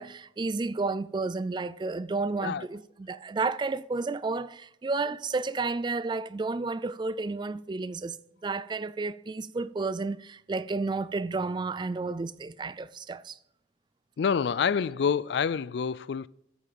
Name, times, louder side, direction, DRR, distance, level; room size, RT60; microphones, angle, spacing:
voice 1, 0.0-8.2 8.4-13.4, right 3 dB, 25° right, 0.3 m, -31 dB
voice 2, 14.2-16.3, left 6 dB, 70° left, 0.3 m, -27 dB
10.5 x 8.4 x 5.2 m
head